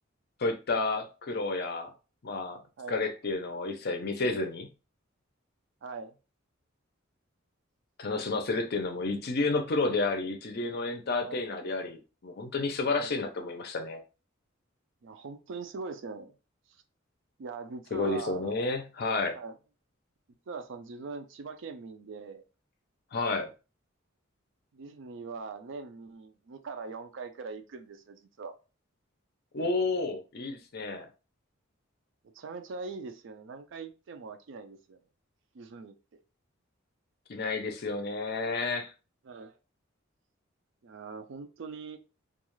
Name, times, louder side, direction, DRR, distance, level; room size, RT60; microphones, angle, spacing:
voice 1, 0.4-1.9 2.2-2.6 2.9-4.7 8.0-14.0 17.9-19.4 23.1-23.5 29.5-31.1 37.3-38.9, left 3 dB, 50° left, 0.5 m, -31 dB
voice 2, 5.8-6.1 11.2-11.4 12.9-13.1 15.0-16.4 17.4-18.5 19.3-19.6 20.5-22.4 24.7-28.5 32.3-35.0 35.5-36.2 39.2-39.6 40.8-42.0, right 4 dB, 65° right, 0.4 m, -42 dB
2.4 x 2.3 x 3.0 m
head